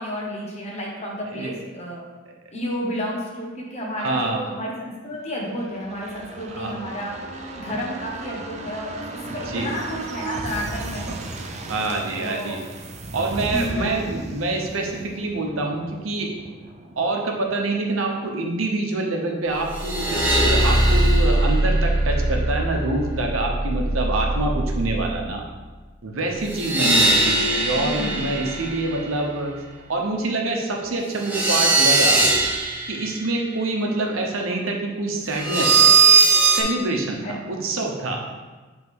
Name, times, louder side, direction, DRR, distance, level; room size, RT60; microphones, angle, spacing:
voice 1, 0.0-2.0 2.5-7.1 7.5-11.1 12.2-12.6 13.4-14.0 27.7-28.1 37.2-37.4, equal, 35° left, -3 dB, 1.2 m, -31 dB
voice 2, 4.0-4.4 6.5-6.7 9.2-9.7 11.1-11.2 11.7-12.6 13.1-16.3 17.0-25.4 26.0-29.5 29.9-32.3 32.9-35.9 36.4-38.2, right 2 dB, 85° right, 1 dB, 0.9 m, -26 dB
sound 1, 5.4-18.9 19.2-19.3, right 2 dB, 35° right, 0.5 m, -36 dB
sound 2, 19.6-25.4 26.4-29.2 31.1-33.1 35.3-36.6, right 3 dB, 10° right, 0.8 m, -20 dB
7.9 x 3.5 x 3.7 m, 1.3 s
head